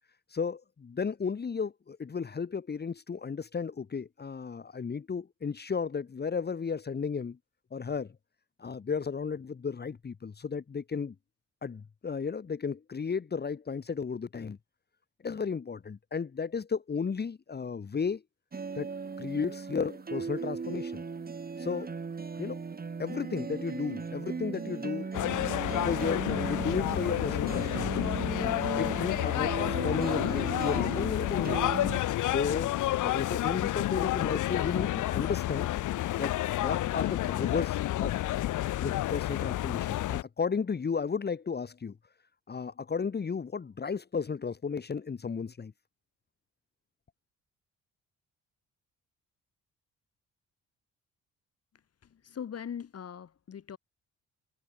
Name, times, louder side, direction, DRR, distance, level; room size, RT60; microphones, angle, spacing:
voice 1, 0.3-7.4 7.7-8.1 8.6-11.1 11.6-14.6 15.2-18.2 18.8-18.9 19.2-21.0 21.6-21.9 22.4-22.6 23.0-25.1 25.8-28.1 28.4-28.5 28.8-31.7 32.3-32.7 33.0-35.7 36.1-38.2 38.8-42.0 42.5-45.7, left 5 dB, 35° left, 2.0 m, -34 dB
sound 1, 18.5-32.0, right 5 dB, 30° right, 2.4 m, -37 dB
sound 2, 25.1-40.2, left 14 dB, 80° left, 2.2 m, -30 dB
voice 2, 52.1-53.8, left 8 dB, 55° left, 6.3 m, -41 dB
cardioid pair, 90°, 30 cm